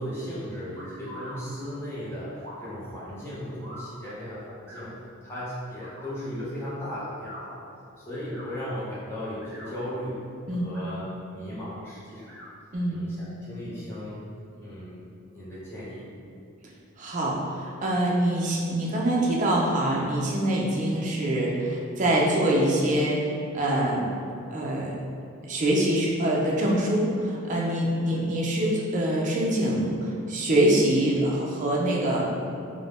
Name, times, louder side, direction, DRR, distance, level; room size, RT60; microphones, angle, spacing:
voice 1, 0.0-4.9 5.2-7.6 8.0-10.2 10.5-12.3 12.9-14.2 14.6-15.0 15.3-16.1, equal, 10° left, -10 dB, 0.6 m, -36 dB
sound 1, 0.7-1.4 2.4-2.7 3.6-3.9 4.6-4.8 5.7-6.0 7.1-7.4 8.2-8.5 9.3-9.7 10.6-11.0 12.2-12.5, equal, 65° right, 0.8 m, -44 dB
voice 2, 17.0-24.1 24.5-25.0 25.5-32.2, right 1 dB, 35° right, -3 dB, 0.4 m, -24 dB
2.5 x 2.1 x 3.3 m, 2.4 s
head